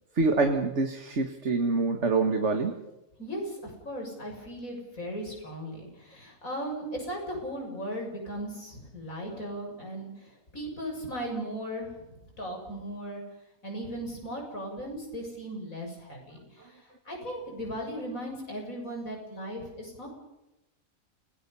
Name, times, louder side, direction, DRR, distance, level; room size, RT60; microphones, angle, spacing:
voice 1, 0.2-2.7, right 3 dB, 55° right, 5 dB, 2.0 m, -25 dB
voice 2, 3.2-13.2 13.6-20.1, equal, 75° left, 1 dB, 7.7 m, -37 dB
29.0 x 19.0 x 5.6 m, 0.96 s
omnidirectional pair, 1.5 m